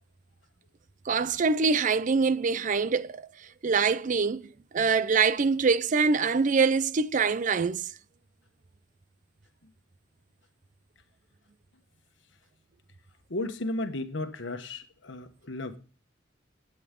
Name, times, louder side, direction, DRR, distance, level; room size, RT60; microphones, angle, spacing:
voice 1, 1.1-3.3 3.6-4.4 4.7-7.9, right 5 dB, 40° right, 0.5 m, -24 dB
voice 2, 13.3-15.8, left 2 dB, 70° left, 1.2 m, -34 dB
17.0 x 8.7 x 3.7 m
head